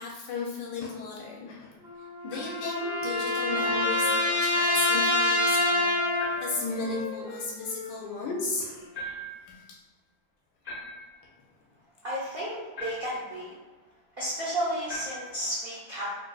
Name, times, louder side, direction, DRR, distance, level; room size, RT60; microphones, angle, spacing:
voice 1, 0.0-8.9 9.4-9.8 11.2-11.3, left 3 dB, 75° left, -2 dB, 1.1 m, -35 dB
sound 1, 1.8-6.6, left 1 dB, 80° right, 1.8 m, -26 dB
Wind instrument woodwind instrument, 2.3-5.2 5.5-8.9, left 3 dB, 90° left, 1.4 m, -41 dB
sound 2, 2.3-2.7 4.1-4.4 6.2-6.6 8.9-9.5 10.6-11.2 12.8-13.3 14.9-15.4, equal, 50° left, 0.6 m, -40 dB
voice 2, 12.0-13.5 14.2-16.1, equal, 55° right, -9 dB, 0.6 m, -32 dB
3.9 x 2.6 x 2.2 m, 1.3 s
omnidirectional pair, 2.1 m